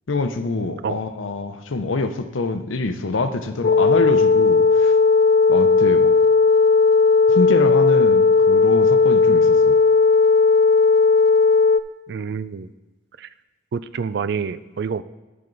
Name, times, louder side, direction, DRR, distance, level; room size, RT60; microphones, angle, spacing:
voice 1, 0.1-4.9 5.5-6.1 7.3-9.8, left 3 dB, 90° left, 9 dB, 0.7 m, -25 dB
sound 1, 3.6-11.8, left 4 dB, 45° left, 0.4 m, -15 dB
voice 2, 12.1-12.7 13.2-13.3 13.7-15.0, right 6 dB, 55° right, 15 dB, 0.3 m, -27 dB
10.5 x 5.9 x 3.9 m, 1.1 s
head